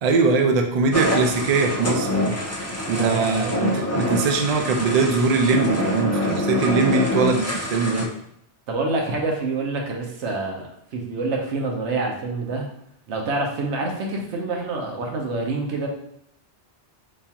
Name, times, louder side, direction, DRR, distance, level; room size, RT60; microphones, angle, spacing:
voice 1, 0.0-2.3 2.9-8.1, right 4 dB, 55° right, 4 dB, 0.4 m, -21 dB
sound 1, 0.9-8.0, left 1 dB, 25° left, 0.3 m, -26 dB
voice 2, 2.9-3.5 8.7-12.7 13.1-15.9, right 3 dB, 85° right, 1 dB, 1.0 m, -27 dB
5.3 x 2.4 x 2.8 m, 0.72 s
omnidirectional pair, 1.2 m